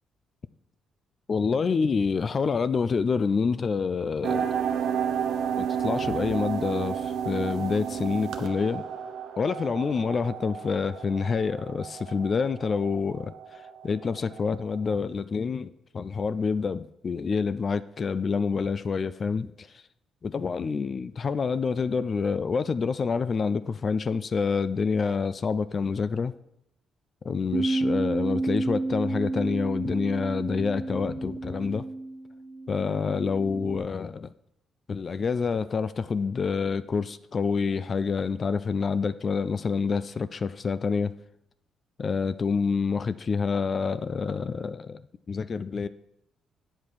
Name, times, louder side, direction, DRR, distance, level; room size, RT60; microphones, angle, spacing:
voice 1, 1.3-4.5 5.6-8.8 9.4-19.7 20.2-26.3 27.2-31.8 32.7-34.3 34.9-41.1 42.0-45.0 45.3-45.9, left 5 dB, 40° left, 0.4 m, -27 dB
sound 1, 4.2-14.9, right 8 dB, 80° right, 0.8 m, -32 dB
Bass guitar, 27.5-33.8, right 2 dB, 50° right, 0.8 m, -31 dB
8.4 x 7.4 x 4.6 m
cardioid pair, 90°, 0 cm